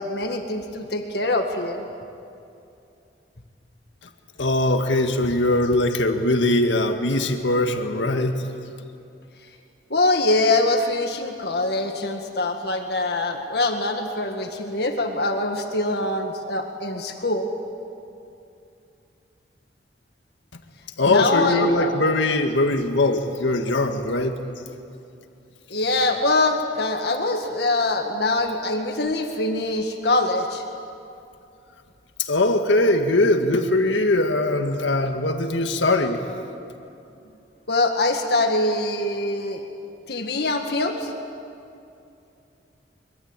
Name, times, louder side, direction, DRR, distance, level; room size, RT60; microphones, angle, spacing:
voice 1, 0.0-1.8 9.9-17.5 21.1-22.0 25.7-30.6 37.7-39.6 40.1-41.1, left 2 dB, 60° left, 4 dB, 1.9 m, -23 dB
voice 2, 4.4-8.5 20.5-20.6 21.0-24.4 32.2-36.2, left 2 dB, 85° left, 5 dB, 1.8 m, -21 dB
25.0 x 23.0 x 9.0 m, 2.6 s
head